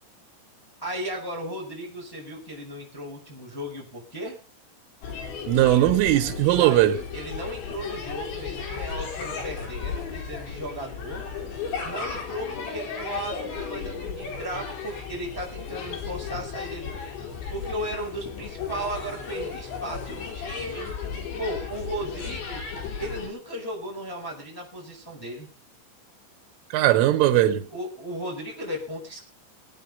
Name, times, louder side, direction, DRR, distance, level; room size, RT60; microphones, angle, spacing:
voice 1, 0.8-4.4 6.6-6.8 7.1-11.2 11.8-16.9 17.5-20.9 21.4-22.6 23.0-25.5 27.7-29.2, right 1 dB, 5° left, 5.1 m, -35 dB
sound 1, 5.0-23.3, left 5 dB, 70° left, 6.1 m, -35 dB
voice 2, 5.5-7.0 26.7-27.7, right 13 dB, 90° right, 3.6 m, -19 dB
20.0 x 9.3 x 5.3 m
omnidirectional pair, 5.5 m